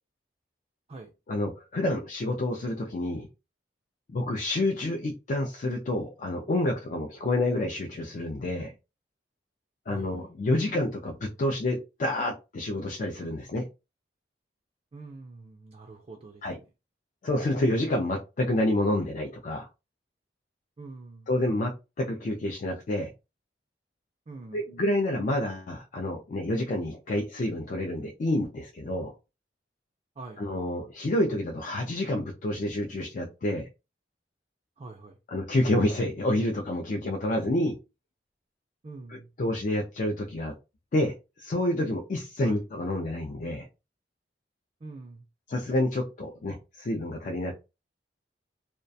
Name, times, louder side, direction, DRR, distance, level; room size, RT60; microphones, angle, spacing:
voice 1, 1.3-3.3 4.1-8.7 9.9-13.6 16.4-16.6 17.2-19.7 21.3-23.1 24.5-29.1 30.4-33.7 35.3-37.8 39.1-40.5 40.9-43.7 45.5-47.5, left 1 dB, 45° left, 0.4 m, -28 dB
voice 2, 9.9-10.3 14.9-16.7 20.8-21.3 24.3-24.6 30.2-30.4 34.8-35.2 38.8-39.3 42.4-42.6 44.8-45.2, right 3 dB, 35° right, 0.3 m, -44 dB
2.3 x 2.1 x 2.6 m
head